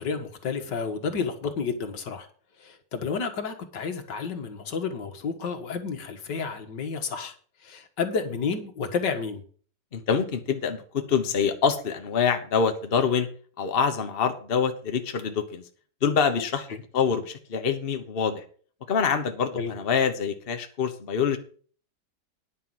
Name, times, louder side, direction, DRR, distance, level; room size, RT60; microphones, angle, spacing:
voice 1, 0.0-2.3 2.6-7.3 7.6-9.4 16.7-16.8 19.5-19.7, left 5 dB, 75° left, 6 dB, 2.1 m, -31 dB
voice 2, 9.9-13.3 13.6-15.6 16.0-16.7 16.9-18.4 18.9-21.4, left 6 dB, 35° left, 6 dB, 1.2 m, -25 dB
10.0 x 5.7 x 7.8 m, 0.44 s
omnidirectional pair, 1.9 m